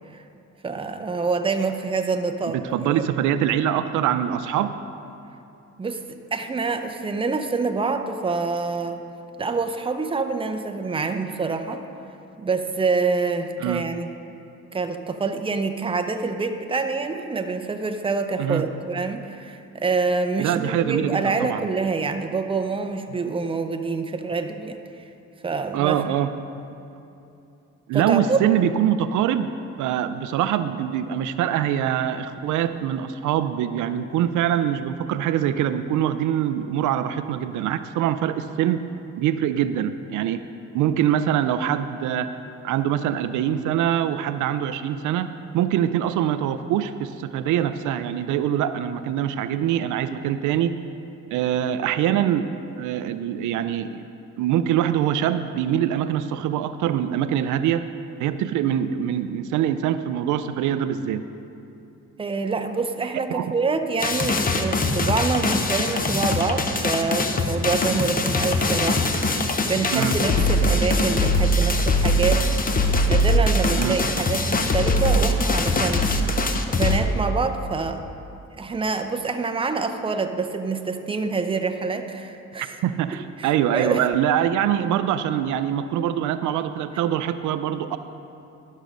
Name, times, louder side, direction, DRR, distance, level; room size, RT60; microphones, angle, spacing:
voice 1, 0.6-3.0 5.8-6.0 6.3-9.0 9.4-11.8 12.4-14.1 14.7-24.8 25.4-26.0 27.9-28.4 62.2-72.4 73.1-76.4 76.7-78.0 78.6-82.8 83.4-84.0, right 4 dB, 15° right, 6 dB, 0.6 m, -26 dB
voice 2, 2.5-4.7 13.6-13.9 18.4-18.6 20.4-21.6 25.7-26.3 27.9-38.8 39.2-40.4 40.7-42.3 42.6-50.8 51.3-54.0 54.4-57.9 58.2-61.2 63.3-63.5 69.9-70.1 73.8-74.0 82.8-88.0, right 10 dB, 80° right, 11 dB, 0.5 m, -24 dB
sound 1, 64.0-77.0, left 1 dB, 30° left, 0.7 m, -22 dB
12.0 x 6.3 x 5.3 m, 2.7 s
cardioid pair, 90°, 30 cm